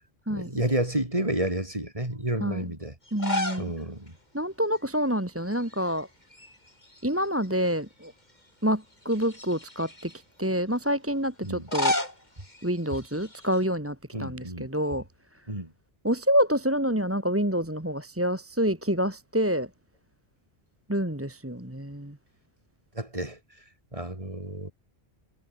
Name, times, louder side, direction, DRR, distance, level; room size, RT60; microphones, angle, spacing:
voice 1, 0.3-2.9 3.6-4.1 11.4-11.7 14.1-14.7 15.5-15.7 22.9-23.4 23.9-24.7, right 1 dB, 30° right, 4.8 m, -30 dB
sound 1, 3.1-3.7 4.1-4.2 5.5-6.0 6.3-7.5 8.0-8.1 9.0-10.2 11.4-13.6, left 1 dB, 40° left, 5.1 m, -32 dB
voice 2, 3.1-3.7 4.3-6.1 7.0-8.1 8.6-10.1 10.4-11.9 12.6-15.0 16.0-19.7 20.9-22.2, equal, 10° right, 2.2 m, -27 dB
omnidirectional pair, 1.1 m